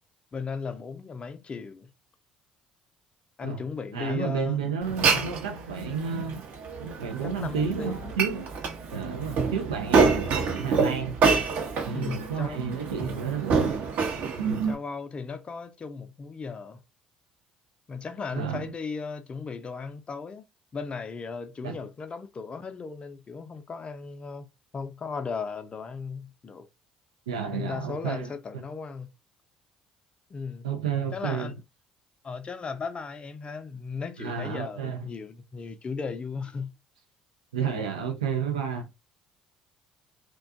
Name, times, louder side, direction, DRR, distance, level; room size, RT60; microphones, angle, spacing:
voice 1, 0.3-1.9 3.4-5.2 7.2-8.1 11.9-12.6 14.7-16.8 17.9-20.4 20.7-26.7 27.5-29.1 30.3-30.7 31.1-31.5 32.2-36.7, left 5 dB, 35° left, 0.5 m, -36 dB
voice 2, 3.9-6.5 6.8-8.5 8.9-11.2 11.8-13.7 14.4-14.8 18.3-18.7 21.6-21.8 27.3-28.6 30.6-31.5 34.2-35.1 37.5-38.9, right 6 dB, 85° right, 0.3 m, -31 dB
Glass, 4.8-14.7, right 5 dB, 60° right, 0.7 m, -27 dB
2.5 x 2.2 x 2.4 m
hypercardioid pair, 55°, 3 cm